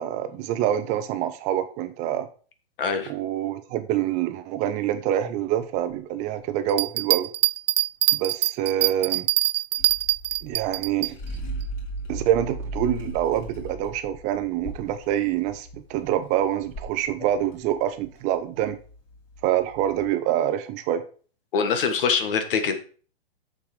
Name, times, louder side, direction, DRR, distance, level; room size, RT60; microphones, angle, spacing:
voice 1, 0.0-2.3 3.1-7.3 8.1-9.3 10.4-11.2 12.1-18.8 19.4-21.0, right 11 dB, 25° right, 11 dB, 0.7 m, -26 dB
voice 2, 2.8-3.1 21.5-22.7, left 5 dB, 60° left, 7 dB, 1.6 m, -23 dB
Bell, 6.7-11.1 11.6-11.7, right 14 dB, 65° right, 0.4 m, -23 dB
sound 1, 9.8-20.1, equal, 25° left, 2.8 m, -38 dB
7.1 x 6.7 x 4.8 m, 0.41 s
hypercardioid pair, 150°, 31 cm